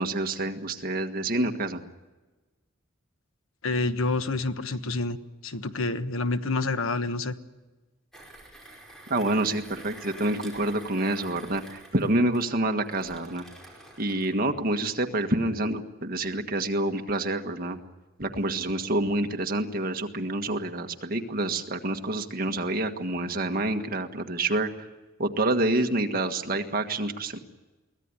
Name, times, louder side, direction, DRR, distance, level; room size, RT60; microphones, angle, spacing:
voice 1, 0.0-1.8 9.1-13.4 14.0-17.8 18.2-24.7 25.2-27.4, right 2 dB, 45° right, 5 dB, 1.7 m, -27 dB
voice 2, 3.6-7.4, left 3 dB, 80° left, 10 dB, 1.2 m, -28 dB
Mechanisms, 8.1-14.3, right 1 dB, ahead, 5.1 m, -48 dB
23.5 x 17.0 x 9.8 m, 1.2 s
head